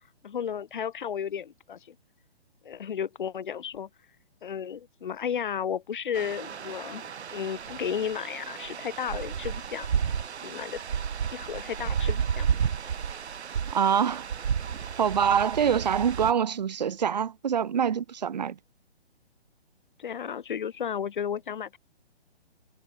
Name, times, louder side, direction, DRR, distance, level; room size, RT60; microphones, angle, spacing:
voice 1, 0.2-1.9 2.6-3.9 4.4-9.9 10.4-10.8 11.3-12.5 20.0-21.8, left 8 dB, 50° left, 1.0 m, -33 dB
sound 1, 6.1-16.3, right 7 dB, 80° right, 1.1 m, -32 dB
voice 2, 13.7-14.2 15.0-18.6, right 8 dB, 40° right, 0.8 m, -25 dB
hypercardioid pair, 170°, 32 cm